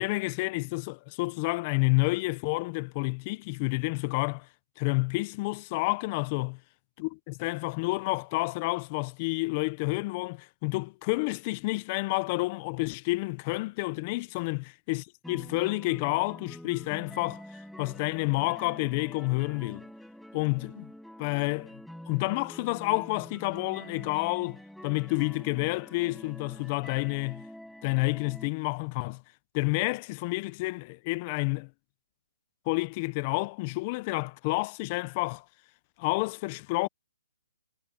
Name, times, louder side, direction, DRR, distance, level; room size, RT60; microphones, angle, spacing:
voice 1, 0.0-4.5 4.8-6.6 7.0-17.4 17.8-19.9 20.3-20.9 21.2-21.8 22.1-27.5 27.8-29.2 29.5-31.7 32.7-35.4 36.0-36.9, left 25 dB, 30° left, 0.6 m, -29 dB
sound 1, 15.2-28.5, equal, ahead, 6.2 m, -46 dB
hypercardioid pair, 160°, 0 cm